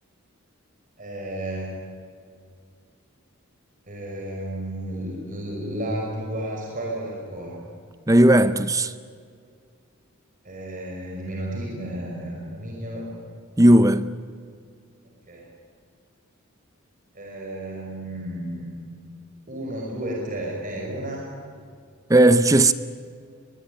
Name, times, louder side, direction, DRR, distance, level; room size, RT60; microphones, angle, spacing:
voice 1, 1.0-1.7 3.9-7.6 10.4-13.1 15.0-15.5 17.1-18.7 19.5-21.3, right 1 dB, 40° right, 5.6 m, -32 dB
voice 2, 8.1-8.9 13.6-14.1 22.1-22.7, right 1 dB, 15° right, 0.6 m, -16 dB
22.5 x 22.0 x 9.8 m
head